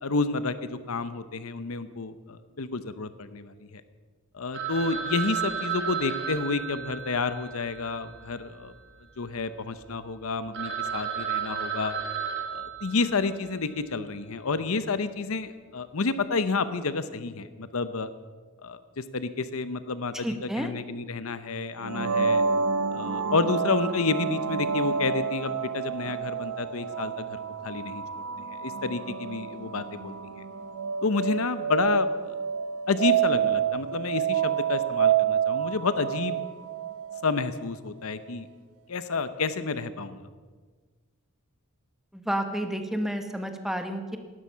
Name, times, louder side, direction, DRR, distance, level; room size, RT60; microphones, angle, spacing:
voice 1, 0.0-3.8 4.3-8.7 9.2-12.0 12.5-18.1 18.6-20.3 20.6-22.4 22.9-28.0 28.6-30.1 31.0-32.4 32.9-36.4 37.2-38.5 38.9-40.3, left 4 dB, 70° left, 12 dB, 0.8 m, -30 dB
Telephone, 4.5-8.9 9.2-9.3 9.8-9.9 10.2-10.3 10.5-13.5, right 7 dB, 55° right, 2.8 m, -33 dB
voice 2, 20.1-20.7 42.1-44.2, equal, ahead, 6 dB, 1.2 m, -30 dB
sound 1, 21.8-37.4, right 7 dB, 85° right, 0.9 m, -28 dB
17.5 x 12.5 x 5.7 m, 1.5 s
head